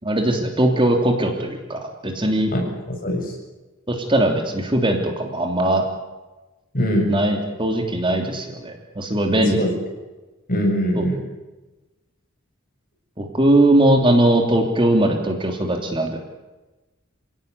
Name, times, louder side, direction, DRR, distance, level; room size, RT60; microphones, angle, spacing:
voice 1, 0.0-2.5 3.9-5.8 7.1-9.7 11.0-11.1 13.2-16.2, right 1 dB, 25° right, 3 dB, 3.1 m, -20 dB
voice 2, 2.5-3.3 6.7-7.1 9.4-9.7 10.5-11.2, equal, 40° left, 1 dB, 7.5 m, -22 dB
27.5 x 17.5 x 9.6 m, 1.1 s
head